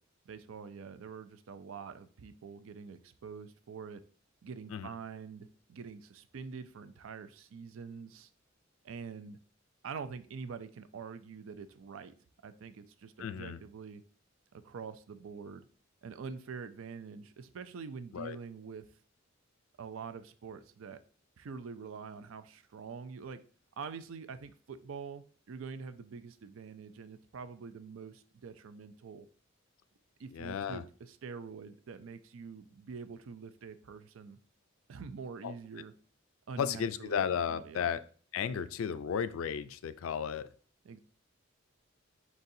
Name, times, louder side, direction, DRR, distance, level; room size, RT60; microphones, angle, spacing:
voice 1, 0.3-4.0 4.4-8.3 8.8-9.4 9.8-12.1 12.4-14.0 14.5-15.6 16.0-18.9 19.8-21.0 21.4-23.4 23.8-29.3 30.2-34.4 34.9-35.9 36.5-37.2 37.5-37.9 40.8-41.0, right 5 dB, 75° right, 11 dB, 0.4 m, -45 dB
voice 2, 13.2-13.6 18.1-18.4 30.3-30.8 35.4-35.5 36.6-38.0 38.3-40.5, left 7 dB, 80° left, 13 dB, 0.4 m, -34 dB
4.7 x 4.1 x 2.6 m, 0.42 s
head